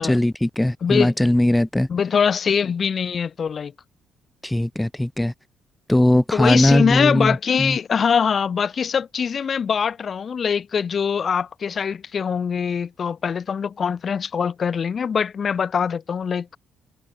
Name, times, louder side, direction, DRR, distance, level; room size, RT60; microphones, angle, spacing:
voice 1, 0.0-1.9 4.4-5.3 5.9-7.8, left 1 dB, 5° left, 0.5 m, -19 dB
voice 2, 0.8-1.1 1.9-3.7 6.3-16.5, left 6 dB, 45° left, 1.2 m, -23 dB
cardioid pair, 95°, 0 cm